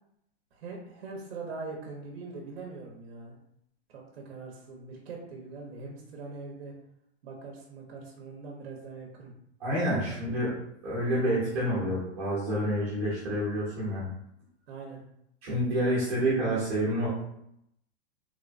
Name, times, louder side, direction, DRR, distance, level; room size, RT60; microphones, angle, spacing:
voice 1, 0.5-3.4 3.9-6.7 7.2-9.3 9.7-10.0 14.7-15.0, right 3 dB, 60° right, -1 dB, 0.7 m, -42 dB
voice 2, 9.6-10.6 10.8-14.0 15.4-17.1, right 1 dB, 25° right, -8 dB, 0.8 m, -28 dB
3.2 x 2.1 x 2.4 m, 0.75 s
supercardioid pair, 175°, 33 cm